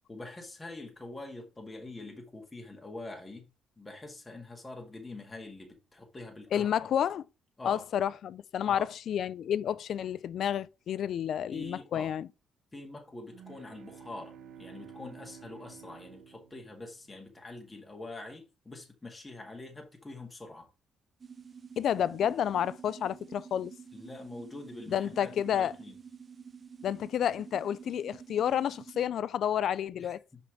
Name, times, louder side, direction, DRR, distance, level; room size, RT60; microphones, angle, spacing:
voice 1, 0.1-3.4 3.8-6.7 7.6-7.8 8.7-8.9 11.5-12.1 12.7-20.7 23.9-26.0 30.0-30.1, left 2 dB, 20° left, 1.9 m, -45 dB
voice 2, 6.5-7.2 7.6-12.3 21.8-23.7 24.9-25.7 26.8-30.2, left 9 dB, 65° left, 0.4 m, -30 dB
sound 1, 13.2-17.3, right 8 dB, 85° right, 0.8 m, -51 dB
sound 2, 21.2-29.1, right 6 dB, 40° right, 0.6 m, -49 dB
5.7 x 4.3 x 4.7 m
cardioid pair, 90°, 0 cm